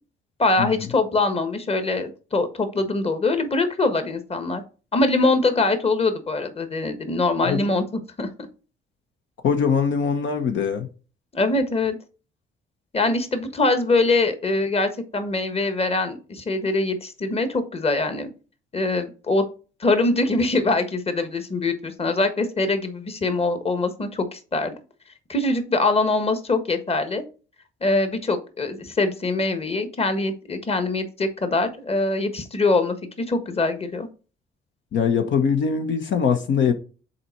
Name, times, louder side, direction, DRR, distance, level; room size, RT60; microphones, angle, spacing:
voice 1, 0.4-4.6 4.9-7.8 8.2-8.3 11.3-12.0 12.9-18.3 18.7-19.4 19.8-24.7 25.3-27.2 27.8-34.1, left 2 dB, 30° left, 1.4 m, -23 dB
voice 2, 9.4-10.9 34.9-36.7, left 6 dB, 65° left, 1.0 m, -22 dB
6.6 x 4.3 x 4.5 m
cardioid pair, 90°, 20 cm